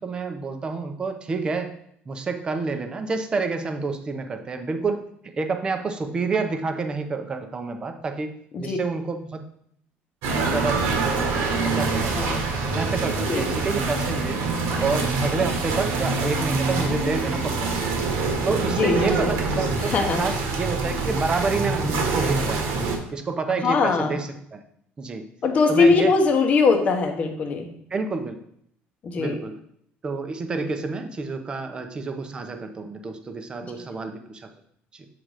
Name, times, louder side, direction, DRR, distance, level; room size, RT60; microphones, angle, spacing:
voice 1, 0.0-1.7 2.1-5.0 5.4-9.4 10.5-12.4 12.7-14.4 14.8-17.7 18.5-24.6 25.0-25.3 25.7-26.1 27.9-28.4 29.2-29.6 30.0-34.5 34.9-35.1, right 4 dB, 20° right, 6 dB, 0.7 m, -29 dB
sound 1, 10.2-23.0, right 3 dB, 80° right, 1.5 m, -25 dB
voice 2, 12.1-12.5 13.2-13.5 18.8-19.3 19.9-20.2 23.6-24.2 25.4-27.7 29.0-29.4, left 4 dB, 35° left, 3 dB, 0.9 m, -21 dB
7.5 x 3.8 x 4.9 m, 0.69 s
cardioid pair, 160°, 4 cm